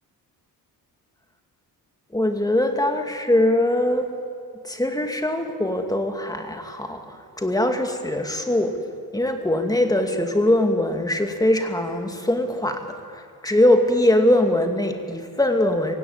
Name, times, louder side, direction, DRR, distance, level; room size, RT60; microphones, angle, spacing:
voice 1, 2.1-4.1 4.6-8.8 9.1-15.9, left 1 dB, 10° left, 5 dB, 2.3 m, -22 dB
25.0 x 16.0 x 9.6 m, 2.2 s
cardioid pair, 130°, 39 cm